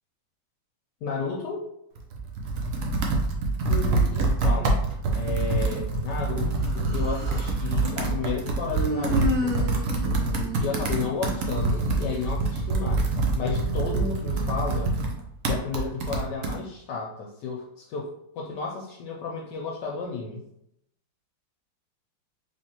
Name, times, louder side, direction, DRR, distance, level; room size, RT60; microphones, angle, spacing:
voice 1, 1.0-1.7 3.6-9.6 10.6-15.0 15.5-20.4, left 4 dB, 70° left, -1 dB, 1.1 m, -32 dB
Computer keyboard, 2.0-16.6, right 3 dB, 75° right, 0.7 m, -26 dB
Human voice, 6.6-7.6 8.7-11.4, left 2 dB, 55° right, 1.2 m, -32 dB
3.4 x 3.3 x 2.8 m, 0.76 s
omnidirectional pair, 2.1 m